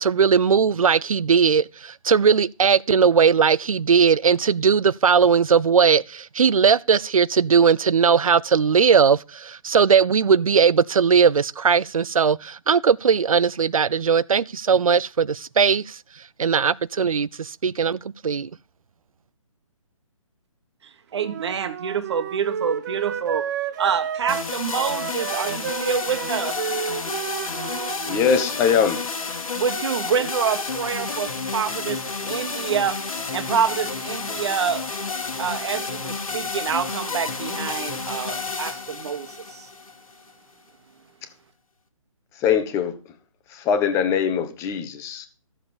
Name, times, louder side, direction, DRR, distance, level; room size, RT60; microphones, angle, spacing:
voice 1, 0.0-16.0 16.4-18.5, right 6 dB, 80° right, 0.6 m, -19 dB
voice 2, 21.1-23.5 23.8-26.6 29.5-33.0 33.3-34.8 35.4-39.7, right 7 dB, 50° right, 1.6 m, -27 dB
Wind instrument woodwind instrument, 21.2-28.5, right 9 dB, 30° right, 0.8 m, -31 dB
sound 1, 24.3-40.3, left 4 dB, 80° left, 2.0 m, -30 dB
voice 3, 28.1-29.1 42.4-43.0 43.5-45.3, left 7 dB, 15° left, 1.1 m, -22 dB
13.5 x 7.3 x 5.1 m
hypercardioid pair, 150°, 18 cm